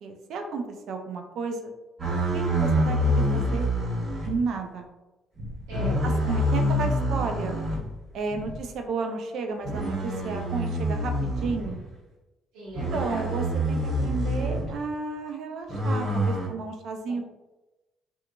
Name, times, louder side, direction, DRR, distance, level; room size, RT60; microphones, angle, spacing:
voice 1, 0.0-1.7 2.3-3.7 4.3-4.9 6.0-7.6 8.1-11.8 12.9-17.2, right 4 dB, 70° right, 5 dB, 0.4 m, -32 dB
sound 1, 2.0-4.4 5.4-7.8 8.3-8.6 9.6-11.8 12.7-14.7 15.7-16.5, equal, 50° right, 1.5 m, -26 dB
voice 2, 5.7-6.5 12.5-13.4 17.1-17.2, equal, 90° right, -8 dB, 1.0 m, -38 dB
2.7 x 2.4 x 2.3 m, 1.1 s
supercardioid pair, 75°, 0 cm